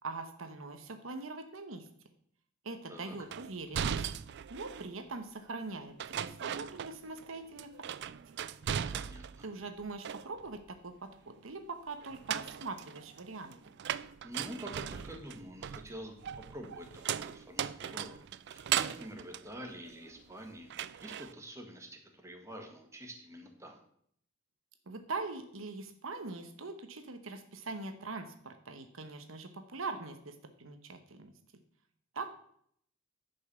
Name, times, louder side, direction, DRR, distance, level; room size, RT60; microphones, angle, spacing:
voice 1, 0.0-1.9 2.6-4.1 4.5-8.1 9.4-13.5 24.9-31.3 32.1-32.3, right 3 dB, 75° right, 7 dB, 1.1 m, -42 dB
sound 1, 3.3-4.9 6.0-7.3 7.6-9.5 9.8-10.6 12.0-20.3 20.7-21.3, right 9 dB, 55° right, 0.4 m, -38 dB
voice 2, 8.9-9.5 14.2-23.8, equal, 15° right, 3 dB, 1.6 m, -47 dB
10.5 x 5.4 x 6.9 m, 0.65 s
head